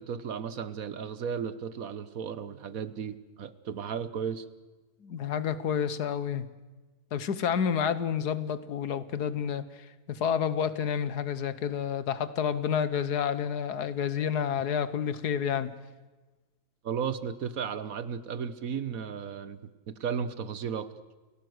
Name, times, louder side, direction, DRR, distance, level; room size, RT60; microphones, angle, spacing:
voice 1, 0.0-4.4 16.8-19.6 19.9-20.9, right 7 dB, 65° right, 14 dB, 1.4 m, -34 dB
voice 2, 5.0-6.5 7.1-15.7, left 8 dB, 75° left, 14 dB, 1.7 m, -29 dB
29.0 x 17.5 x 7.9 m, 1.2 s
omnidirectional pair, 1.7 m